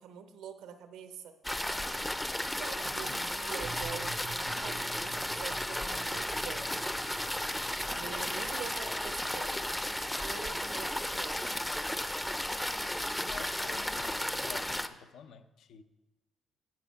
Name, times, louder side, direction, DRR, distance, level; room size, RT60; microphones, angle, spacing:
voice 1, 0.0-1.4 2.4-6.6 6.9-7.2 7.9-9.6 10.1-11.5, right 8 dB, 90° right, 8 dB, 0.8 m, -45 dB
sound 1, 1.4-14.9, left 1 dB, 5° left, 0.4 m, -34 dB
voice 2, 2.8-3.2 13.3-15.8, left 7 dB, 80° left, 9 dB, 0.6 m, -49 dB
sound 2, 3.6-11.6, right 6 dB, 50° right, 0.5 m, -51 dB
8.1 x 6.9 x 5.2 m, 1.1 s
cardioid pair, 90°, 0 cm